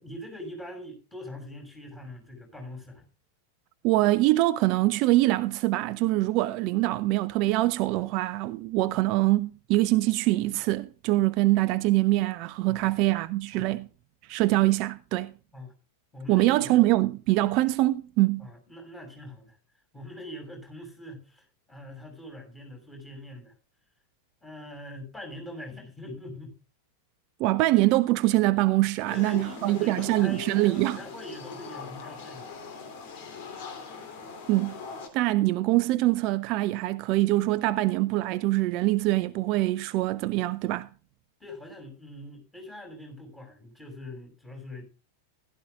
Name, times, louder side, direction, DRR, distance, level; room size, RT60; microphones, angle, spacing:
voice 1, 0.0-3.0 12.7-13.0 13.5-13.7 15.5-15.7 16.1-16.8 18.4-19.6 19.9-23.5 24.4-26.5 29.1-32.5 41.4-44.9, left 1 dB, 10° left, 6.6 m, -42 dB
voice 2, 3.8-13.9 14.3-15.3 16.3-18.5 27.4-31.0 34.5-34.8 35.1-40.9, right 18 dB, 40° right, 0.5 m, -24 dB
sound 1, 29.1-35.1, left 5 dB, 50° left, 3.0 m, -42 dB
15.5 x 12.5 x 2.4 m
figure-of-eight pair, 90°, 0 cm